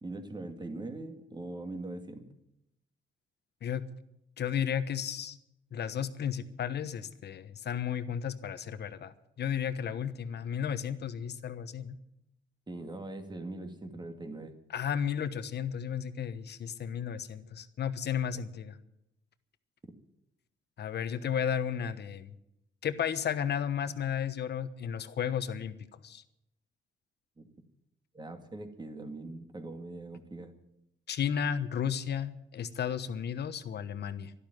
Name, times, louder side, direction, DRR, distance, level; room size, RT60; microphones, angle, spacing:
voice 1, 0.0-2.3 12.7-14.5 27.4-27.5 28.1-30.6, right 2 dB, 20° right, 6 dB, 2.2 m, -41 dB
voice 2, 4.4-5.4 5.7-12.0 14.7-18.8 20.8-22.3 22.8-26.2 31.1-34.3, left 8 dB, 60° left, 11 dB, 1.2 m, -33 dB
12.0 x 12.0 x 9.3 m, 0.83 s
cardioid pair, 90°, 20 cm